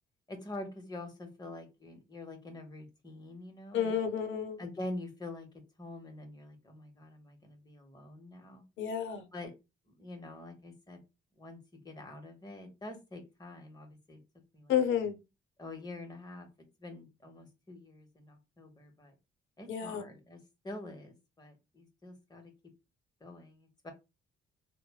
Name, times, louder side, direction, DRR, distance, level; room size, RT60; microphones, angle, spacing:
voice 1, 0.3-4.0 4.6-5.5 5.8-8.6 9.3-9.5 9.9-11.0 11.4-14.2 14.5-14.7 15.6-16.5 16.8-19.2 19.6-22.5 23.2-23.9, left 2 dB, 20° left, 0.9 m, -46 dB
voice 2, 3.7-4.6 8.8-9.2 14.7-15.2 19.7-20.0, left 8 dB, 70° left, 0.6 m, -30 dB
3.1 x 2.1 x 2.2 m
cardioid pair, 90°, 20 cm